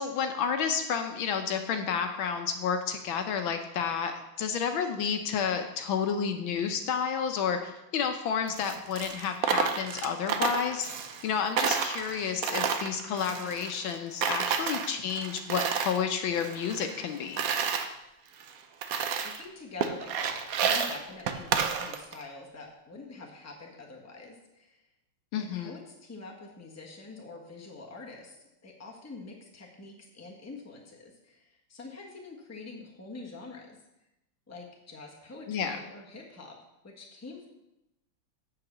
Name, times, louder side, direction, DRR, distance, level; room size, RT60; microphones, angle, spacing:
voice 1, 0.0-10.9 11.2-17.4 25.3-25.7 35.5-35.8, left 7 dB, 75° left, 6 dB, 1.5 m, -30 dB
Coin (dropping), 8.5-11.3 11.6-13.9 14.2-16.0 16.3-17.9 18.4-18.5 18.8-19.4 19.8-22.2, right 6 dB, 65° right, 0.8 m, -30 dB
voice 2, 19.2-24.9 25.3-33.8 34.5-36.6 36.8-37.5, left 3 dB, 10° left, -1 dB, 1.1 m, -46 dB
7.8 x 5.9 x 7.2 m, 0.92 s
omnidirectional pair, 2.3 m